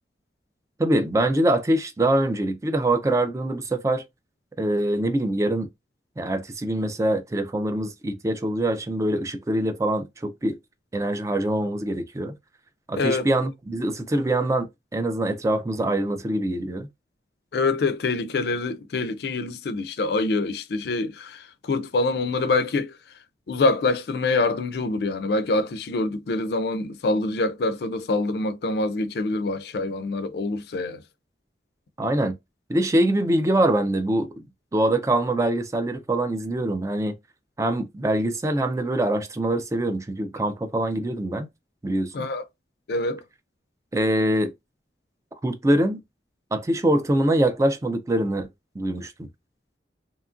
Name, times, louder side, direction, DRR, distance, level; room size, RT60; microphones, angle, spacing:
voice 1, 0.8-4.0 4.6-5.7 6.2-10.6 10.9-12.3 12.9-16.9 32.0-32.4 32.7-34.3 34.7-37.2 37.6-41.5 41.8-42.3 43.9-44.5 45.4-46.0 46.5-48.5 48.8-49.3, right 1 dB, 15° right, 0.3 m, -24 dB
voice 2, 13.0-13.3 17.5-23.0 23.5-31.0 42.1-42.5 42.9-43.2, left 3 dB, 60° left, 0.4 m, -25 dB
2.8 x 2.4 x 2.4 m
head